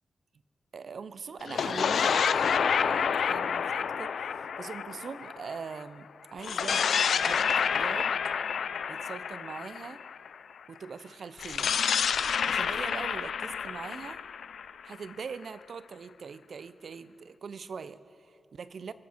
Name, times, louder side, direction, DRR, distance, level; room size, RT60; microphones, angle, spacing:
voice 1, 0.7-8.1 8.9-10.0 10.7-11.7 12.3-14.2 14.8-18.9, right 5 dB, 65° right, 15 dB, 0.4 m, -42 dB
sound 1, 1.4-5.8 6.4-10.3 11.4-15.2, left 7 dB, 85° left, 0.3 m, -29 dB
22.0 x 7.5 x 4.3 m, 2.7 s
wide cardioid pair, 95°, 0 cm